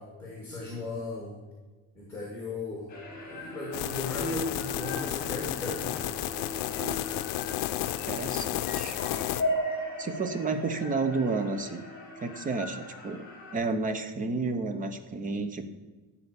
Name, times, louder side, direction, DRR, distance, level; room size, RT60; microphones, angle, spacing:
voice 1, 0.0-1.4 2.0-2.9 3.1-6.1, left 2 dB, 5° left, -3 dB, 2.2 m, -37 dB
sound 1, 2.9-13.5, equal, 25° left, 2.3 m, -37 dB
sound 2, 3.7-9.4, left 15 dB, 85° left, 0.6 m, -32 dB
voice 2, 8.1-9.0 10.0-11.8 12.2-13.3 13.5-15.6, right 3 dB, 20° right, 9 dB, 0.7 m, -31 dB
12.5 x 4.3 x 8.3 m, 1.2 s
cardioid pair, 175°, 38 cm